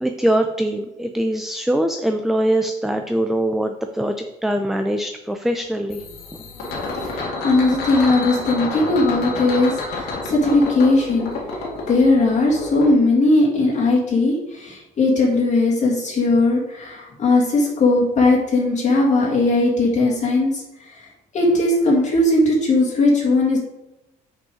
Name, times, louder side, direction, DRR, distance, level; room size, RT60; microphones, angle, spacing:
voice 1, 0.0-4.1 4.4-6.0 8.0-8.1, right 1 dB, ahead, 5 dB, 0.4 m, -22 dB
sound 1, 5.9-12.9, left 3 dB, 75° left, 2.1 m, -29 dB
voice 2, 7.0-11.3 11.9-21.0 21.3-23.6, left 2 dB, 45° left, -3 dB, 1.9 m, -18 dB
6.1 x 5.1 x 4.9 m, 0.94 s
cardioid pair, 110°, 17 cm